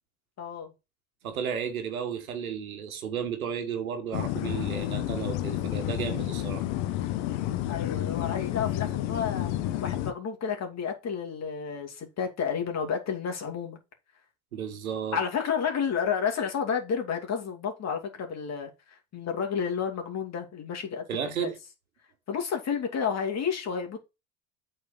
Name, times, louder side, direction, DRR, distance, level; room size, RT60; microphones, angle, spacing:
voice 1, 0.4-0.7 7.7-9.5 9.8-13.8 15.1-18.7 19.1-21.5 22.3-24.0, left 7 dB, 40° left, 2.5 m, -31 dB
voice 2, 1.2-6.6 14.5-15.2 21.1-21.6, right 7 dB, 85° right, 1.6 m, -33 dB
sound 1, 4.1-10.1, left 13 dB, 65° left, 0.9 m, -30 dB
8.2 x 4.4 x 6.0 m
hypercardioid pair, 70°, 41 cm